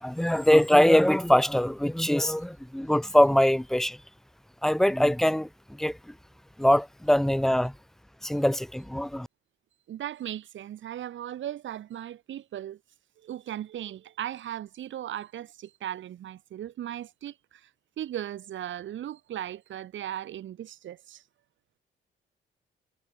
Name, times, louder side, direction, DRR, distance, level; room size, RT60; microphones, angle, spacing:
voice 1, 0.0-4.0 4.6-6.0 6.6-7.7 8.2-9.3, left 1 dB, ahead, 1.1 m, -23 dB
voice 2, 9.9-12.8 13.2-17.7 18.0-21.2, right 11 dB, 70° right, 5.1 m, -37 dB
cardioid pair, 90°, 20 cm